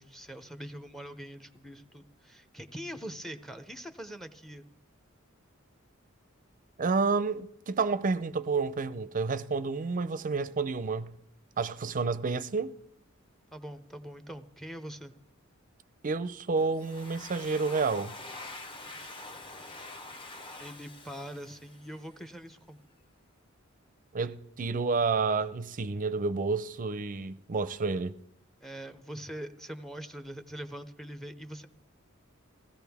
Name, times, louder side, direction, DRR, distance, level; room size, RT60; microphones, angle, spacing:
voice 1, 0.0-4.6 13.5-15.1 20.6-22.8 28.6-31.7, equal, ahead, 0.6 m, -43 dB
voice 2, 6.8-11.1 11.6-12.7 16.0-18.1 24.1-28.2, right 4 dB, 40° right, 0.5 m, -30 dB
Domestic sounds home sounds, 16.6-22.2, left 2 dB, 25° left, 1.0 m, -45 dB
20.5 x 16.0 x 3.5 m
head